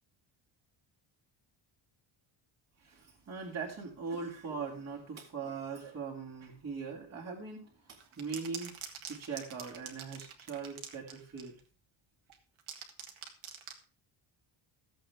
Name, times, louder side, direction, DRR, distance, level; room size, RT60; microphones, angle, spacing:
voice 1, 2.8-8.8 9.1-11.5, right 5 dB, 30° right, 2.6 m, -41 dB
sound 1, 8.0-11.6 12.3-13.8, right 8 dB, 70° right, 1.9 m, -45 dB
14.5 x 7.8 x 3.4 m
cardioid pair, 175°, 49 cm